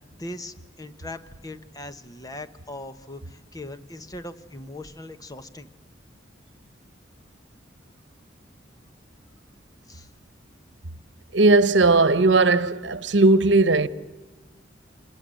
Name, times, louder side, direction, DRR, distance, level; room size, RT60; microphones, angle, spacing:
voice 1, 0.2-5.7 9.9-10.1, left 1 dB, 20° left, 1.1 m, -39 dB
voice 2, 11.3-13.9, right 3 dB, 80° right, 1.0 m, -17 dB
26.0 x 20.5 x 7.7 m
head